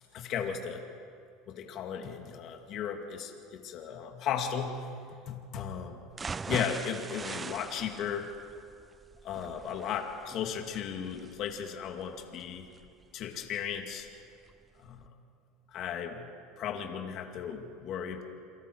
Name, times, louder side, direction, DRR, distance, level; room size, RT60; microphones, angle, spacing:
voice 1, 0.1-0.9 1.5-4.9 5.3-6.0 6.4-8.3 9.2-12.7 13.1-14.1 14.8-15.1 15.7-16.3 16.6-18.2, left 8 dB, 50° left, 3 dB, 2.3 m, -36 dB
sound 1, 6.1-14.1 14.5-14.6 15.0-15.1, right 5 dB, 20° right, 0.4 m, -42 dB
28.5 x 23.0 x 4.7 m, 2.4 s
supercardioid pair, 115°, 0 cm